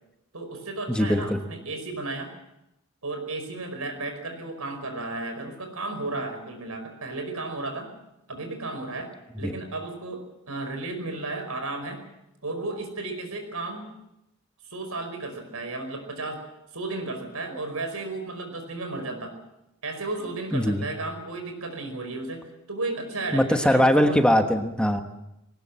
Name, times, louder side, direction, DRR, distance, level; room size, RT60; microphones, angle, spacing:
voice 1, 0.3-2.3 3.0-7.9 8.3-12.0 12.4-13.9 14.7-16.5 16.7-19.4 19.8-24.2, right 2 dB, 85° right, 7 dB, 5.1 m, -34 dB
voice 2, 0.9-1.4 9.4-9.5 20.5-20.8 23.3-25.0, equal, 5° left, 5 dB, 1.3 m, -21 dB
20.5 x 18.5 x 7.6 m, 0.88 s
head